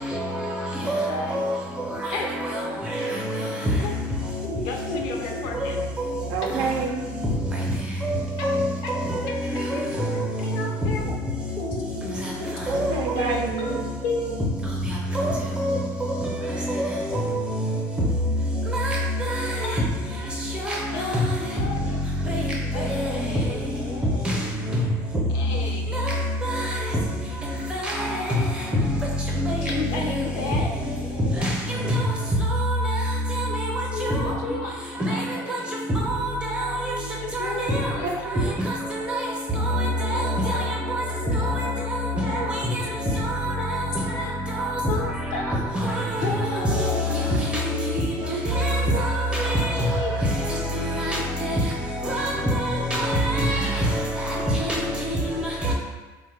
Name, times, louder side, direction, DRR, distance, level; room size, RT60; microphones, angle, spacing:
voice 1, 0.1-0.6 0.8-1.6 2.0-3.5 4.5-5.0 5.5-6.1 6.4-6.6 8.0-10.5 11.6-11.8 12.7-13.3 15.1-17.7 18.7-19.7 20.5-21.3 22.3-22.4 22.7-23.1 24.2-24.4 25.9-26.8 27.7-28.4 29.4-30.1 31.4-32.1 32.4-33.0 33.3-34.3 35.1-35.6 35.9-37.0 37.3-37.9 38.7-39.3 39.5-41.0 41.3-42.8 43.1-43.8 44.5-44.8 45.3-47.2 47.5-48.0 48.5-55.7, equal, 10° right, -2 dB, 0.6 m, -26 dB
voice 2, 1.1-1.4 2.1-2.3 3.8-3.9 4.6-5.8 6.4-6.6 8.4-9.0 9.3-11.1 12.9-14.3 19.6-19.8 20.9-22.4 22.7-24.7 25.3-26.0 29.3-31.7 33.9-34.7 35.1-35.8 37.2-38.2 40.0-40.8 41.1-42.5 42.9-43.2 43.5-44.4 44.9-45.6 45.8-47.7 48.6-50.2 55.2-55.3, left 4 dB, 85° left, 1 dB, 0.5 m, -34 dB
voice 3, 6.3-7.1 12.7-13.9 38.0-38.6 41.5-41.7 42.1-42.8 47.1-48.6 48.9-49.1, right 5 dB, 65° right, 2 dB, 0.4 m, -30 dB
3.2 x 2.1 x 3.3 m, 1.3 s
cardioid pair, 140°, 8 cm